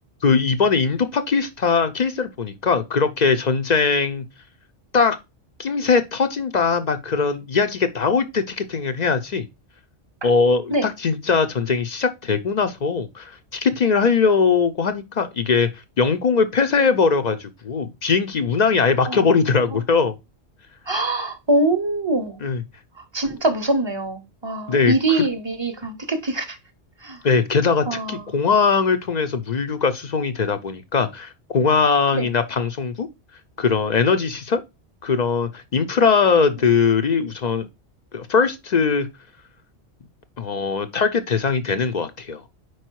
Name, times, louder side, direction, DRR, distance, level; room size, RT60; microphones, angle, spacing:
voice 1, 0.2-4.2 4.9-5.2 5.6-9.5 10.2-20.1 22.4-22.6 24.7-25.3 27.2-33.1 33.6-34.6 35.0-37.7 38.1-39.1 40.4-42.4, left 5 dB, 50° left, 0.5 m, -20 dB
voice 2, 20.9-22.4 23.1-26.6 27.0-27.2 27.9-28.3 32.1-32.3, right 2 dB, 25° right, 0.7 m, -23 dB
4.9 x 4.6 x 4.5 m
omnidirectional pair, 1.2 m